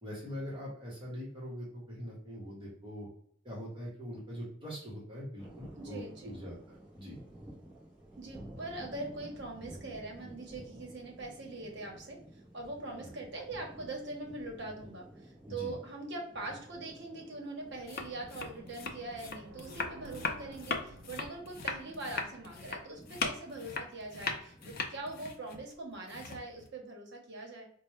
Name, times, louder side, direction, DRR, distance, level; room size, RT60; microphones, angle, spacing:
voice 1, 0.0-3.1 3.4-7.1 15.5-15.7, equal, 25° right, -5 dB, 1.0 m, -42 dB
sound 1, 5.4-25.3, right 1 dB, 5° right, 0.9 m, -53 dB
voice 2, 5.8-6.4 8.2-12.2 12.5-27.7, right 2 dB, 60° right, 0 dB, 1.0 m, -42 dB
sound 2, 16.8-23.6, right 2 dB, 80° right, 0.5 m, -56 dB
sound 3, 17.8-26.7, left 4 dB, 45° left, 0.5 m, -39 dB
4.1 x 2.2 x 3.1 m, 0.64 s
head